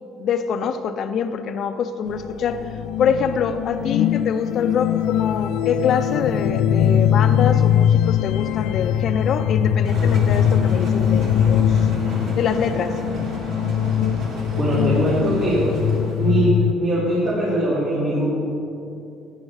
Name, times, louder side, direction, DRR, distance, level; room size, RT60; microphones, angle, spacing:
voice 1, 0.2-11.9 12.3-13.0, left 7 dB, 50° left, 9 dB, 0.7 m, -25 dB
sound 1, 2.1-16.7, left 9 dB, 85° left, 0.4 m, -21 dB
sound 2, 9.8-16.3, right 1 dB, 60° right, 2.9 m, -31 dB
voice 2, 14.6-15.7 16.2-18.4, right 1 dB, 40° right, -10 dB, 3.7 m, -21 dB
16.0 x 10.5 x 4.9 m, 2.7 s
cardioid pair, 150°, 0 cm